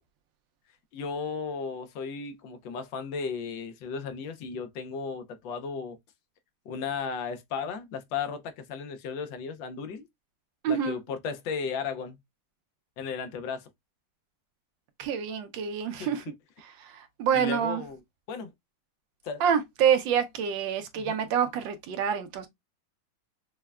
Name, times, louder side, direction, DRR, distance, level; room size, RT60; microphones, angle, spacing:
voice 1, 0.9-6.0 6.7-10.1 10.7-12.2 13.0-13.7 16.0-16.3 17.3-18.0 18.3-18.5 19.2-19.4 21.0-21.2, left 5 dB, 80° left, 1.4 m, -35 dB
voice 2, 10.6-11.0 15.0-16.2 16.6-17.8 19.4-22.5, right 8 dB, 85° right, 1.4 m, -27 dB
5.5 x 2.1 x 2.3 m
omnidirectional pair, 2.0 m